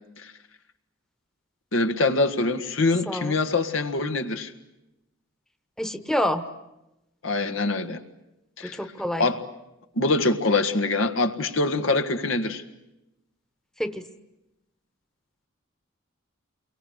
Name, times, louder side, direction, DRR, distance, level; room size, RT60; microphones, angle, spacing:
voice 1, 1.7-4.5 7.2-8.0 8.6-8.8 9.2-9.4 9.9-12.6, left 3 dB, 90° left, 8 dB, 1.7 m, -24 dB
voice 2, 3.1-3.4 5.8-6.4 8.6-9.3 13.8-14.0, equal, 5° left, 9 dB, 1.0 m, -27 dB
28.5 x 23.0 x 8.0 m, 0.94 s
head